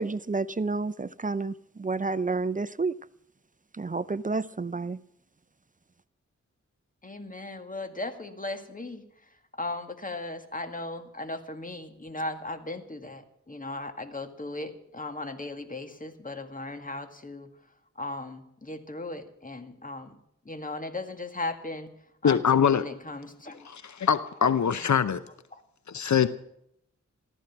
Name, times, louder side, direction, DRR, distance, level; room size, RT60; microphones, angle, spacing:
voice 1, 0.0-3.0 3.7-5.0, right 3 dB, 30° right, 18 dB, 0.5 m, -30 dB
voice 2, 7.0-17.5 18.0-20.2 20.4-21.9 22.2-23.7 24.4-25.0 25.5-25.6, left 2 dB, 30° left, 7 dB, 2.2 m, -37 dB
voice 3, 22.2-22.8 23.7-25.2 25.9-26.3, left 7 dB, 75° left, 13 dB, 0.8 m, -23 dB
15.0 x 14.0 x 6.0 m, 0.74 s
wide cardioid pair, 65°, 29 cm